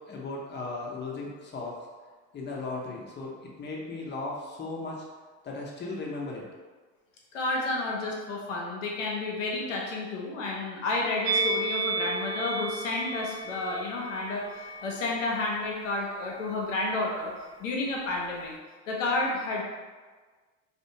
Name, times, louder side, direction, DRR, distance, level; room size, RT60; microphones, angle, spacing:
voice 1, 0.0-1.9 2.3-5.0 5.4-6.5, left 3 dB, 30° left, -2 dB, 0.7 m, -36 dB
voice 2, 7.3-17.3 17.6-18.6 18.9-19.6, left 2 dB, 90° left, -2 dB, 0.6 m, -31 dB
Musical instrument, 11.2-16.5 16.7-17.0, right 2 dB, 55° right, 0.8 m, -33 dB
2.5 x 2.1 x 2.7 m, 1.4 s
hypercardioid pair, 75°, 37 cm